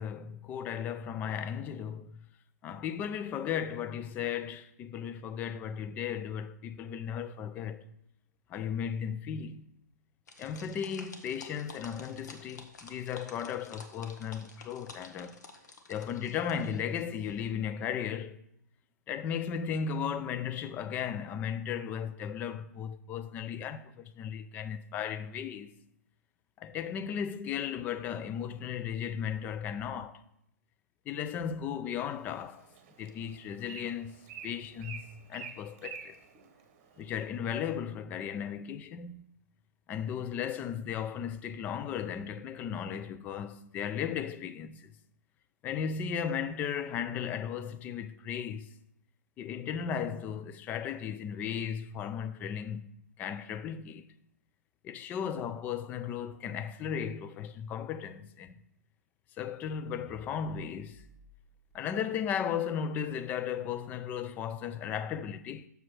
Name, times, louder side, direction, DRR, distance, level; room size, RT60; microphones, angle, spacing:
voice 1, 0.0-2.3 2.6-7.8 8.5-9.7 10.4-15.4 15.9-18.4 19.1-25.7 26.6-30.2 31.1-32.7 33.0-34.2 34.4-36.2 37.0-39.2 39.9-44.9 45.6-48.7 49.4-52.9 53.2-54.0 54.8-58.6 59.4-61.1 61.7-65.7, left 8 dB, 15° left, 0.3 m, -36 dB
sound 1, 10.3-17.5, left 3 dB, 70° left, 1.1 m, -51 dB
Bird, 32.1-37.3, right 7 dB, 35° right, 1.0 m, -49 dB
sound 2, 59.9-61.7, equal, ahead, 1.2 m, -56 dB
6.7 x 4.6 x 5.9 m
hypercardioid pair, 135°, 10 cm